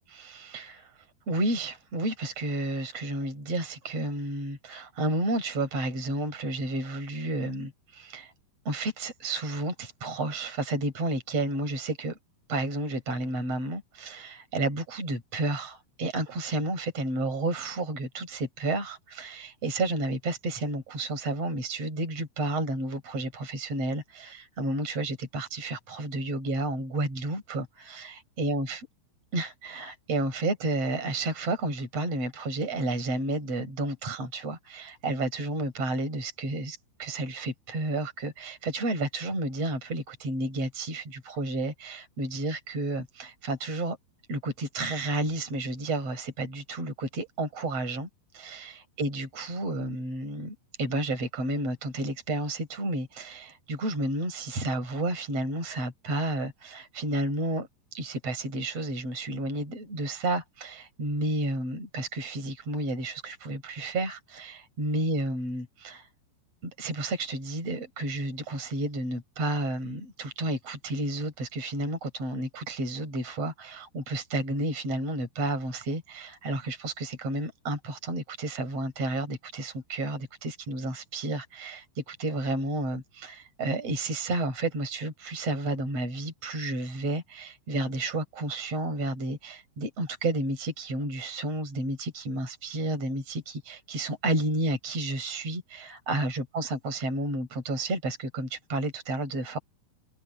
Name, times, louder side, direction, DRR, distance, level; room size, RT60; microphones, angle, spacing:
voice 1, 0.1-0.9 1.3-8.3 8.6-12.2 12.5-28.8 29.3-44.0 44.3-48.1 48.3-66.1 66.6-99.6, right 2 dB, 30° right, 8.1 m, -31 dB
omnidirectional pair, 5.4 m